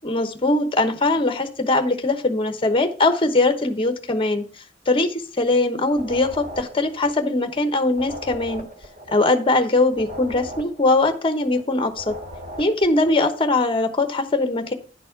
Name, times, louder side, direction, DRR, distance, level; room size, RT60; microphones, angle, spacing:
voice 1, 0.0-4.4 4.9-8.6 9.1-12.1 12.6-14.7, left 2 dB, 30° left, 8 dB, 1.0 m, -21 dB
sound 1, 5.9-7.6 7.9-11.6 11.9-13.2, equal, 50° right, 1.9 m, -39 dB
10.0 x 4.1 x 5.7 m, 0.39 s
head